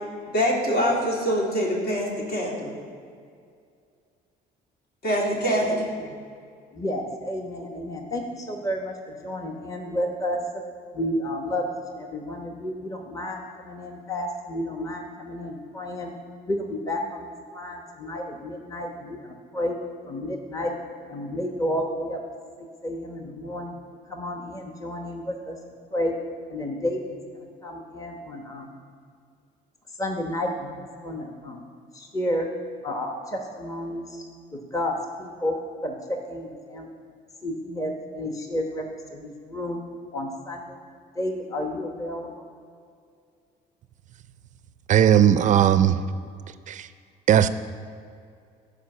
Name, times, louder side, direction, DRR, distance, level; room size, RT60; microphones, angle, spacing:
voice 1, 0.3-2.7 5.0-5.9, equal, 60° left, -2 dB, 2.7 m, -24 dB
voice 2, 5.2-5.8 6.1-6.2 6.7-10.4 10.9-11.6 11.9-16.1 16.5-19.8 20.1-20.7 21.1-22.2 22.8-23.7 24.1-25.6 25.9-26.1 26.5-28.7 30.0-31.6 31.9-32.5 32.8-34.2 34.5-35.5 35.8-36.9 37.4-38.8 39.1-39.8 40.1-40.8 41.2-42.3, left 1 dB, 20° left, 2 dB, 1.0 m, -31 dB
voice 3, 44.9-46.0 46.5-46.9 47.3-47.5, right 10 dB, 45° right, 12 dB, 0.4 m, -18 dB
12.0 x 5.0 x 6.6 m, 2.3 s
cardioid pair, 110°, 17 cm